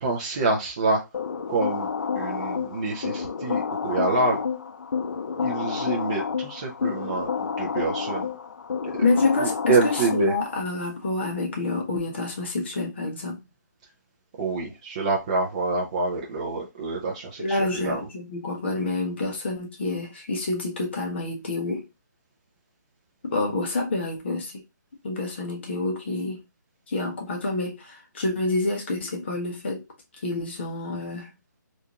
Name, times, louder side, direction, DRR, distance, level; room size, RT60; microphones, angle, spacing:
voice 1, 0.0-1.0 1.5-1.9 2.1-4.4 5.4-8.3 9.0-10.3 14.4-18.1, right 3 dB, 20° right, 0.5 m, -27 dB
sound 1, 1.1-10.6, left 6 dB, 70° left, 0.5 m, -29 dB
voice 2, 9.0-13.4 17.4-21.8 23.2-24.6 25.0-26.4 26.9-29.8 30.2-31.3, left 3 dB, 35° left, 0.9 m, -28 dB
3.4 x 2.5 x 2.8 m
hypercardioid pair, 175°, 10 cm